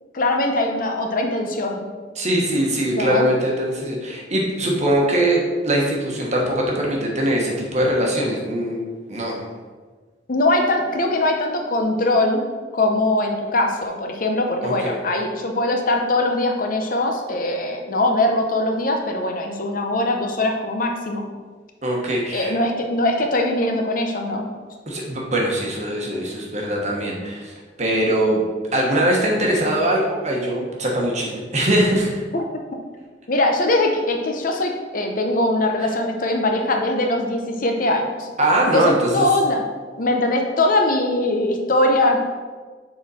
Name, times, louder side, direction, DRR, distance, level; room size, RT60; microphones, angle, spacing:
voice 1, 0.1-1.9 2.9-3.3 10.3-12.4 12.7-21.2 22.3-24.5 32.3-32.4 33.3-38.3 38.7-39.6 40.0-42.4, left 2 dB, 45° left, 3 dB, 0.7 m, -21 dB
voice 2, 2.1-8.8 9.1-9.4 14.6-15.0 21.8-22.6 24.9-27.5 27.8-28.4 28.7-32.2 38.4-39.3, right 1 dB, 40° right, -1 dB, 1.2 m, -21 dB
6.7 x 4.3 x 4.1 m, 1.4 s
head